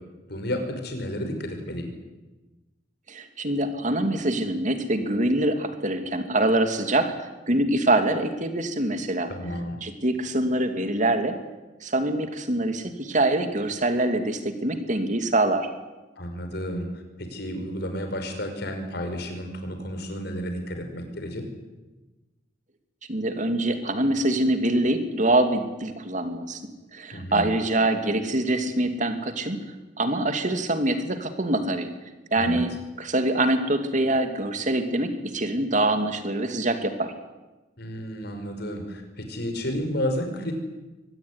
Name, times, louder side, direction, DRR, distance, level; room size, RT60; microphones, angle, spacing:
voice 1, 0.3-1.9 9.3-9.8 16.2-21.5 27.1-27.5 32.4-32.6 37.8-40.5, equal, 60° left, 5 dB, 5.8 m, -31 dB
voice 2, 3.1-9.3 9.8-11.4 11.8-15.7 23.1-26.6 26.9-29.6 30.0-31.9 32.3-32.7 33.0-37.1, right 1 dB, 40° right, 7 dB, 2.8 m, -24 dB
24.0 x 19.0 x 9.8 m, 1.1 s
head